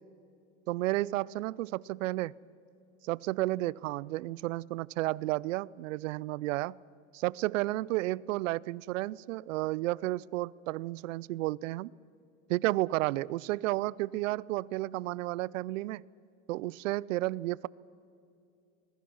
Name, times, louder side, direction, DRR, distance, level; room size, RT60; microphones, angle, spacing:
voice 1, 0.7-2.3 3.0-6.8 7.1-11.9 12.5-16.0 16.5-17.7, right 18 dB, 70° right, 0.5 m, -32 dB
26.5 x 21.0 x 6.3 m
supercardioid pair, 150°, 40 cm